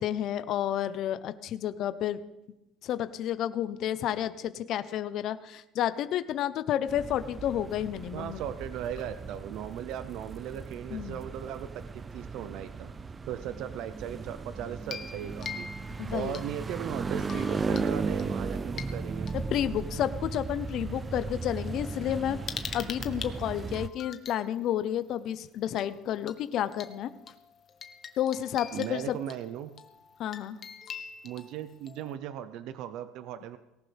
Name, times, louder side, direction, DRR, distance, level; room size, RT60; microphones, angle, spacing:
voice 1, 0.0-2.2 2.8-8.4 10.9-11.2 16.0-16.4 19.3-22.4 22.7-27.1 28.2-29.2 30.2-30.6, left 11 dB, 50° left, 12 dB, 0.8 m, -31 dB
sound 1, 6.9-23.9, right 4 dB, 20° right, 0.5 m, -36 dB
voice 2, 8.1-11.8 12.1-12.9 13.2-15.7 16.1-19.3 28.7-29.7 31.2-33.6, right 10 dB, 60° right, 11 dB, 0.8 m, -37 dB
sound 2, 14.8-16.7 17.2-17.9 18.2-20.4 21.2-21.3 21.7-24.4 25.8-26.0 26.3-26.4 26.7-32.2, left 7 dB, 35° left, 1.2 m, -44 dB
18.5 x 18.0 x 3.5 m, 0.96 s
cardioid pair, 140°, 0 cm